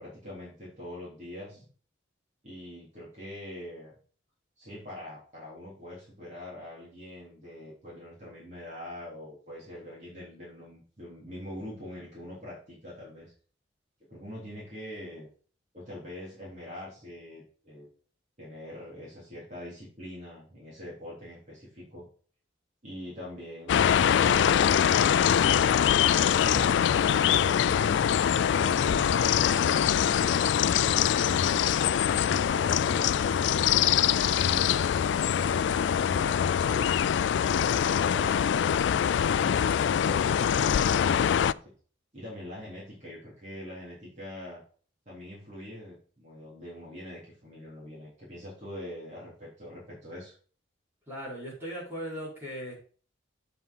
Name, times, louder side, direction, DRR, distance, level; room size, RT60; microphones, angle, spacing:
voice 1, 0.0-1.6 2.4-4.0 4.6-13.3 14.1-15.3 15.7-17.9 18.4-22.1 22.8-24.9 34.0-36.9 42.1-44.6 45.1-50.3, left 1 dB, 35° right, -7 dB, 3.7 m, -43 dB
sound 1, 23.7-41.5, left 8 dB, 70° left, 0.3 m, -24 dB
sound 2, 29.3-34.6 35.1-36.5 37.0-37.1 37.6-37.7, left 6 dB, 85° left, 1.0 m, -46 dB
voice 2, 51.1-52.8, equal, 15° right, -7 dB, 5.1 m, -38 dB
7.5 x 5.7 x 5.6 m, 0.43 s
head